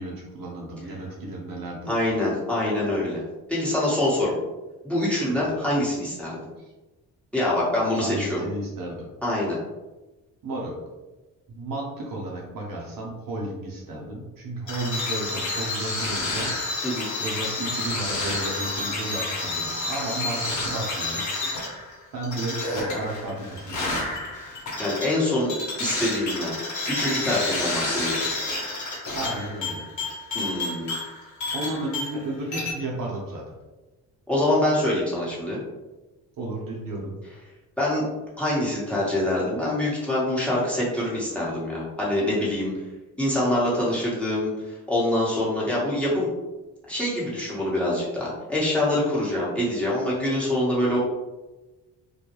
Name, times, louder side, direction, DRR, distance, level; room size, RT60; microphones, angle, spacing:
voice 1, 0.0-1.9 5.3-5.7 6.6-6.7 8.0-9.1 10.4-10.7 11.5-16.9 17.2-21.3 21.7-21.9 22.1-24.2 29.1-29.9 31.5-33.4 36.4-37.1, right 2 dB, 55° right, -2 dB, 0.8 m, -33 dB
voice 2, 1.9-3.2 3.5-4.4 4.8-6.4 7.3-8.4 9.2-9.6 16.8-17.1 24.8-25.5 25.8-26.5 26.9-28.3 30.3-30.9 34.3-35.6 37.8-38.1 38.4-42.7 43.2-46.3 46.9-51.0, left 1 dB, 5° left, -6 dB, 1.1 m, -25 dB
sound 1, 14.7-32.3 32.5-32.7, left 2 dB, 45° left, 1.0 m, -30 dB
2.3 x 2.1 x 3.0 m, 1.1 s
supercardioid pair, 55°, 40 cm